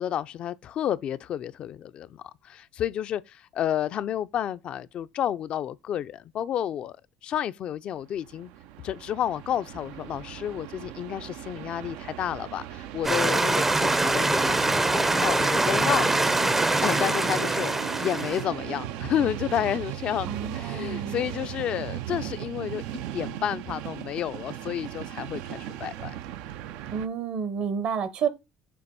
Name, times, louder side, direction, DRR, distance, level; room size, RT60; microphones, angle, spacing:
voice 1, 0.0-7.0 7.2-8.5 8.8-26.2, left 10 dB, 55° left, 0.4 m, -31 dB
Train, 8.1-27.1, right 11 dB, 85° right, 0.5 m, -37 dB
sound 1, 13.0-18.5, right 2 dB, 15° right, 0.5 m, -24 dB
voice 2, 20.3-21.2 26.9-28.3, right 7 dB, 60° right, 1.0 m, -30 dB
6.9 x 2.6 x 5.3 m
cardioid pair, 100°, 2 cm